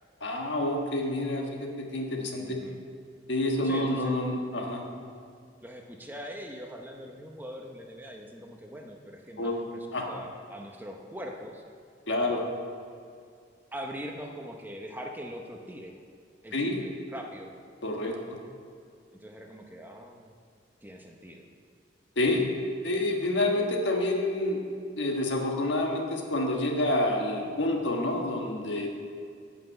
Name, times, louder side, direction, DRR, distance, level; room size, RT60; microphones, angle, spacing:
voice 1, 0.2-2.6 3.3-4.8 9.4-9.6 9.9-10.1 12.1-12.4 16.5-16.8 17.8-18.4 22.1-22.5 22.8-24.6 25.0-29.0, left 1 dB, 70° left, 1 dB, 1.5 m, -28 dB
voice 2, 2.4-2.8 3.6-4.2 5.6-11.6 12.2-12.5 13.7-16.0 16.4-17.5 18.3-18.4 19.1-20.3 20.8-21.5, equal, 10° right, 2 dB, 0.7 m, -42 dB
10.5 x 5.9 x 8.0 m, 2.3 s
head